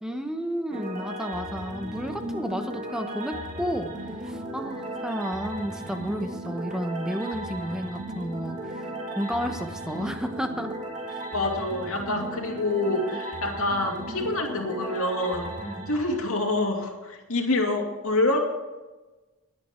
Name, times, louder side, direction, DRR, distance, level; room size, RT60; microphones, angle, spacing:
voice 1, 0.0-3.9 4.2-8.9 9.2-10.7 11.1-11.2 15.6-15.9, equal, 5° right, 6 dB, 0.9 m, -32 dB
sound 1, 0.7-16.8, right 1 dB, 35° right, 1.9 m, -36 dB
voice 2, 11.3-15.5 15.9-18.4, left 2 dB, 70° left, 1 dB, 2.5 m, -26 dB
20.5 x 8.8 x 4.4 m, 1.2 s
head